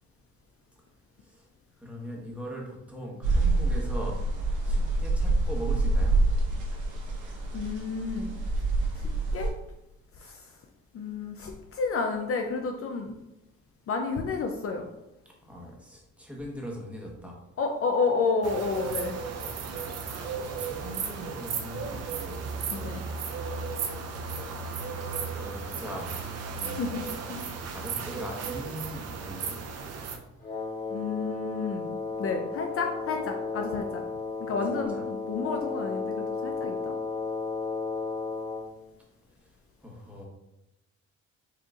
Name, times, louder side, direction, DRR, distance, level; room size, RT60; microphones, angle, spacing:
voice 1, 1.8-4.2 4.6-6.2 15.5-17.3 20.0-22.4 25.0-26.1 26.5-27.1 27.7-29.6 34.9-35.0 39.8-40.2, equal, 5° right, -3 dB, 1.1 m, -40 dB
sound 1, 3.2-9.5, right 2 dB, 85° right, 1.1 m, -26 dB
voice 2, 7.5-8.4 8.9-9.5 10.2-10.5 10.9-13.2 13.9-14.9 17.6-19.2 22.7-23.0 26.6-27.0 27.3-27.4 30.9-34.0 34.4-36.9, left 4 dB, 50° left, 3 dB, 0.5 m, -31 dB
sound 2, 18.4-30.2, right 5 dB, 55° right, 0.6 m, -35 dB
Wind instrument woodwind instrument, 30.4-38.7, left 4 dB, 30° left, 1.2 m, -33 dB
4.8 x 2.9 x 2.4 m, 0.89 s
cardioid pair, 90°, 30 cm